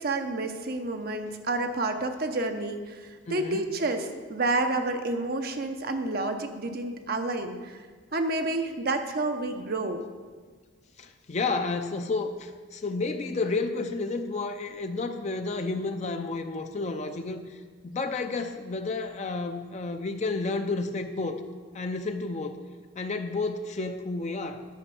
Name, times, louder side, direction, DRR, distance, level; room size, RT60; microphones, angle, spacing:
voice 1, 0.0-7.8 8.1-10.0, right 2 dB, 45° right, 6 dB, 0.7 m, -29 dB
voice 2, 3.3-3.7 11.0-21.4 21.7-22.6 23.0-24.7, left 3 dB, 35° left, 6 dB, 0.5 m, -31 dB
10.0 x 5.7 x 6.9 m, 1.5 s
head